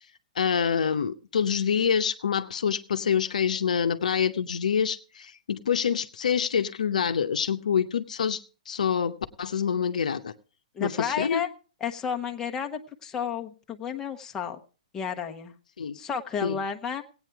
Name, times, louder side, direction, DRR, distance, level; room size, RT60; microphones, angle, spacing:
voice 1, 0.4-10.3 10.8-11.4 15.8-16.0 16.4-16.6, left 7 dB, 75° left, 8 dB, 0.8 m, -26 dB
voice 2, 10.7-11.5 11.8-14.6 14.9-15.5 15.9-17.0, left 7 dB, 15° left, 3 dB, 0.9 m, -32 dB
16.5 x 8.8 x 4.6 m, 0.38 s
hypercardioid pair, 135°, 4 cm